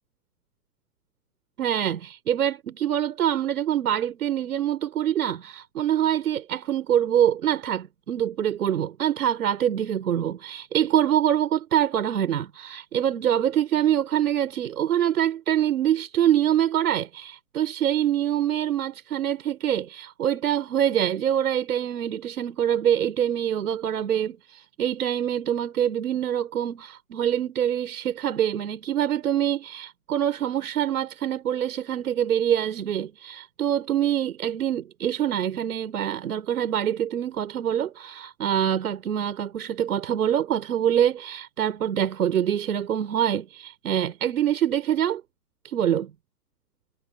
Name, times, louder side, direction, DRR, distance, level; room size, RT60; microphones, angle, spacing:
voice 1, 1.6-45.2 45.6-46.1, right 10 dB, 65° right, 5.4 m, -25 dB
figure-of-eight pair, 105°, 48 cm